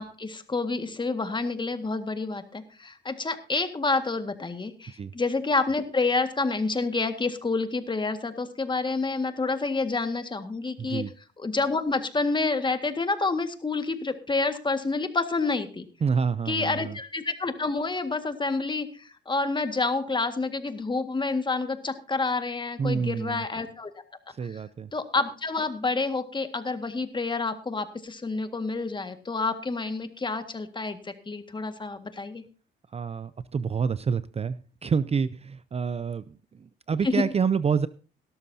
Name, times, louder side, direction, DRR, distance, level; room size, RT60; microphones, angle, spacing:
voice 1, 0.0-11.0 11.4-15.8 16.5-23.9 24.5-24.6 24.9-32.4 37.1-37.2, left 3 dB, 25° left, 8 dB, 1.8 m, -28 dB
voice 2, 10.8-11.1 16.0-17.0 22.8-23.4 24.3-24.9 32.9-37.9, right 6 dB, 30° right, 16 dB, 0.5 m, -28 dB
17.5 x 12.5 x 2.8 m, 0.36 s
cardioid pair, 90°, 20 cm